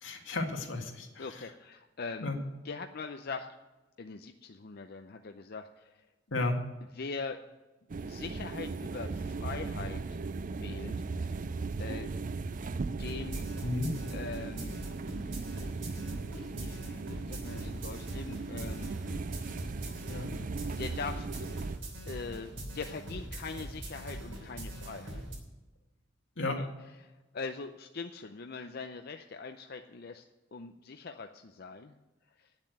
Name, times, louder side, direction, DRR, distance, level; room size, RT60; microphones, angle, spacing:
voice 1, 0.0-1.3 2.2-2.4 6.3-6.6 13.6-13.9 20.1-20.3 26.4-26.6, left 2 dB, 85° left, 3 dB, 2.0 m, -33 dB
voice 2, 1.2-2.3 2.6-3.5 4.0-6.0 6.9-7.4 8.1-10.0 10.5-11.5 11.8-12.1 12.4-12.5 13.0-13.5 14.1-14.8 16.3-18.9 20.5-21.6 22.0-25.2 26.6-26.7 27.0-30.2 30.5-31.9 32.4-32.5, left 4 dB, 55° left, 6 dB, 0.6 m, -42 dB
sound 1, 7.9-21.8, right 4 dB, 45° right, 0.4 m, -38 dB
sound 2, 13.0-25.4, right 1 dB, 80° right, 3.2 m, -42 dB
9.8 x 7.4 x 9.3 m, 1.1 s
head